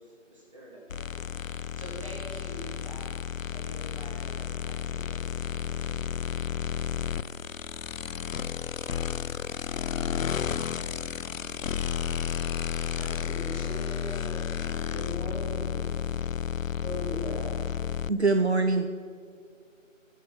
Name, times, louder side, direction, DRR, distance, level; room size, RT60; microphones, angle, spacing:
voice 1, 0.0-3.2 3.5-6.2 6.7-7.2, equal, 25° right, -4 dB, 2.8 m, -47 dB
sound 1, 0.9-18.1, left 8 dB, 80° left, 0.6 m, -32 dB
voice 2, 12.9-14.5 14.9-15.8 16.8-17.6, left 1 dB, ahead, -29 dB, 2.4 m, -38 dB
voice 3, 18.1-18.9, right 3 dB, 55° right, 7 dB, 0.9 m, -23 dB
16.0 x 7.5 x 7.3 m, 2.1 s
figure-of-eight pair, 175°, 39 cm